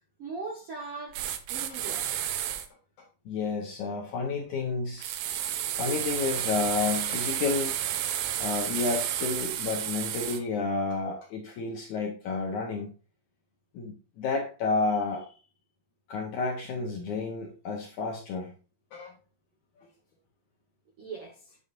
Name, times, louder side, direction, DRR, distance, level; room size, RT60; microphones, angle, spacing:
voice 1, 0.2-1.2 1.5-2.1 21.0-21.6, right 4 dB, 60° right, 1.5 m, -39 dB
sound 1, 1.1-2.7 5.0-10.4, right 11 dB, 90° right, 3.0 m, -31 dB
voice 2, 3.3-5.2 5.8-7.7 8.4-12.9 13.7-15.4 16.1-18.5 18.9-19.1 19.8-19.9, left 4 dB, 70° left, 1.9 m, -31 dB
9.6 x 7.2 x 2.6 m
omnidirectional pair, 4.8 m